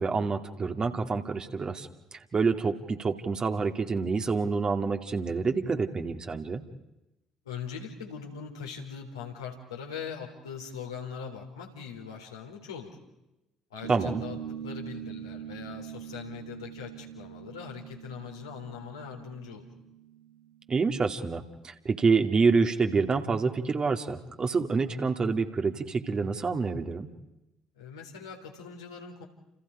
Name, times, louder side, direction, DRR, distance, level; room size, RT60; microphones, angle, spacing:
voice 1, 0.0-6.6 13.9-14.2 20.7-27.1, right 4 dB, 35° right, 5 dB, 2.5 m, -27 dB
voice 2, 7.4-13.0 13.7-19.7 27.7-29.3, left 6 dB, 80° left, 0 dB, 4.0 m, -41 dB
sound 1, 13.8-20.8, right 9 dB, 85° right, 3.7 m, -42 dB
30.0 x 29.0 x 5.1 m, 0.96 s
figure-of-eight pair, 50°, 2 cm